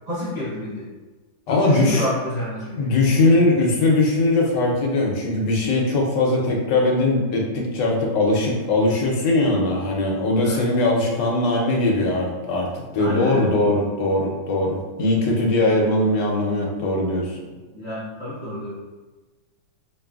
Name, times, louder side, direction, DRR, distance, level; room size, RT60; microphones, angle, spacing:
voice 1, 0.1-0.9 1.5-2.9 4.7-4.8 10.4-10.6 13.0-13.5 17.7-18.8, left 1 dB, 55° right, -9 dB, 0.4 m, -29 dB
voice 2, 1.5-2.1 2.8-17.4, left 2 dB, 70° left, 0 dB, 1.3 m, -20 dB
4.6 x 3.1 x 2.3 m, 1.2 s
omnidirectional pair, 2.0 m